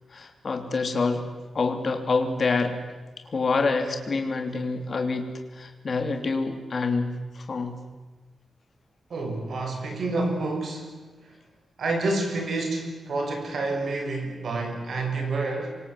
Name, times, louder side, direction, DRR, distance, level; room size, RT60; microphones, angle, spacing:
voice 1, 0.1-1.3 1.5-2.8 3.3-7.8, left 4 dB, 40° left, 5 dB, 3.1 m, -27 dB
voice 2, 9.1-11.1 11.8-15.8, right 2 dB, 55° right, 4 dB, 5.8 m, -28 dB
27.5 x 24.5 x 8.0 m, 1.3 s
wide cardioid pair, 175°, 0 cm